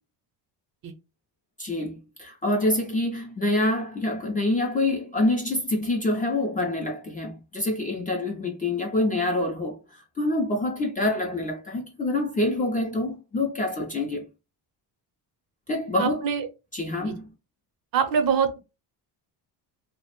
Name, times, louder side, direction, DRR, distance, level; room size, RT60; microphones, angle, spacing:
voice 1, 1.6-14.3 15.7-16.3 16.7-17.3, left 2 dB, 20° left, 0.4 m, -26 dB
voice 2, 16.0-16.5 17.0-17.1 17.9-18.6, right 7 dB, 55° right, 0.7 m, -24 dB
2.8 x 2.1 x 2.9 m
cardioid pair, 155°, 43 cm